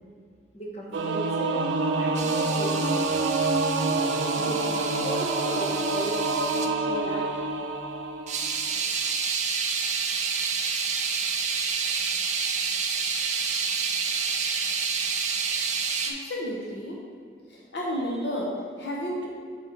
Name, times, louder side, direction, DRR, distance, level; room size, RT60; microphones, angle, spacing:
voice 1, 0.5-1.7 2.0-3.2 4.3-7.4, right 1 dB, 35° left, -2 dB, 1.1 m, -36 dB
Singing / Musical instrument, 0.9-8.7, right 3 dB, 85° right, 0.6 m, -27 dB
sound 1, 2.1-6.7 8.3-16.1, right 5 dB, 40° right, 0.5 m, -29 dB
voice 2, 16.0-17.0 17.5-19.3, equal, 65° left, -2 dB, 0.8 m, -32 dB
5.3 x 4.9 x 5.0 m, 2.2 s
head